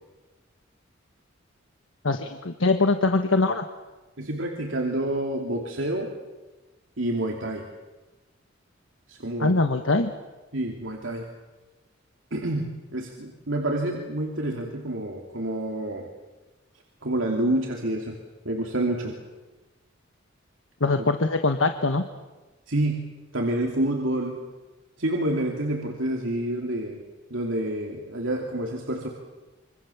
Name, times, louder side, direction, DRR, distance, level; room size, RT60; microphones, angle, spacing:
voice 1, 2.0-3.6 9.4-10.1 20.8-22.0, left 3 dB, 80° left, 7 dB, 1.4 m, -22 dB
voice 2, 4.2-6.1 7.0-7.7 9.1-9.6 10.5-11.3 12.3-16.1 17.0-18.2 18.4-19.2 22.7-24.4 25.0-27.0 27.3-29.1, right 1 dB, 70° right, 0 dB, 3.0 m, -28 dB
26.5 x 25.0 x 7.2 m, 1.2 s
head